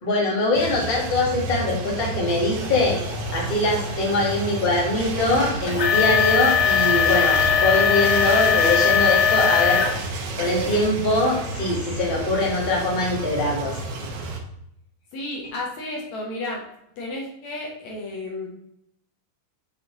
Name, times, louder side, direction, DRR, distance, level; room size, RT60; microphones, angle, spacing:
voice 1, 0.0-3.0 3.3-9.8 10.4-13.7, left 2 dB, 30° left, -4 dB, 1.1 m, -22 dB
sound 1, 0.5-14.4, right 2 dB, 85° right, 1.3 m, -31 dB
sound 2, 2.6-10.0 10.4-10.8 11.4-11.5 12.2-12.3, left 7 dB, 85° left, 1.1 m, -22 dB
voice 2, 15.1-16.6 17.0-18.5, left 2 dB, 65° left, -2 dB, 2.1 m, -32 dB
7.3 x 4.3 x 3.8 m, 0.78 s
omnidirectional pair, 4.0 m